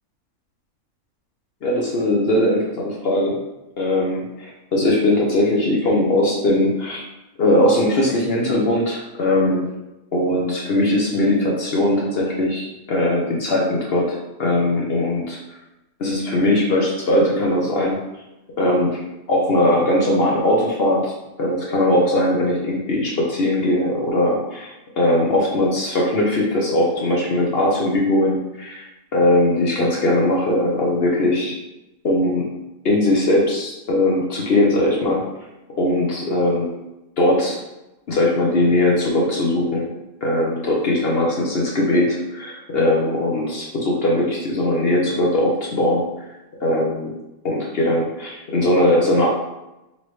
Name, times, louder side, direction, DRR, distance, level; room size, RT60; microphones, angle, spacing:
voice 1, 1.6-3.4 3.8-7.0 7.4-9.7 10.1-15.4 16.0-18.0 18.6-19.0 19.3-28.9 29.1-31.5 32.0-32.5 32.8-35.3 35.8-36.7 37.2-37.6 38.1-39.9 40.2-46.0 46.6-47.1 47.4-49.3, left 1 dB, 55° left, -2 dB, 0.8 m, -20 dB
4.1 x 3.0 x 3.0 m, 0.95 s
omnidirectional pair, 1.5 m